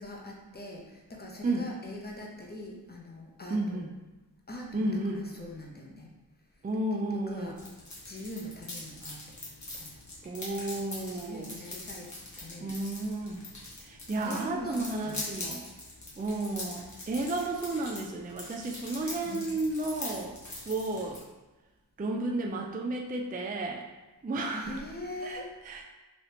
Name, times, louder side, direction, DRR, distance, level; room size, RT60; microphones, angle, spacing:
voice 1, 0.0-3.9 4.5-6.1 7.1-7.6 8.1-9.4 9.7-9.9 11.1-12.1 12.4-12.8 14.1-15.2 19.3-19.5 24.5-25.5, left 1 dB, 25° left, -1 dB, 0.8 m, -42 dB
voice 2, 3.5-3.9 4.7-5.3 6.6-7.6 10.2-11.6 12.6-13.4 13.8-15.6 16.2-20.3 20.7-21.2 22.0-23.8 24.2-24.8 25.2-25.8, right 2 dB, 25° right, 1 dB, 0.4 m, -32 dB
sound 1, 7.6-21.2, left 2 dB, 45° left, 1.3 m, -43 dB
3.3 x 2.8 x 2.9 m, 1.1 s
cardioid pair, 45°, 41 cm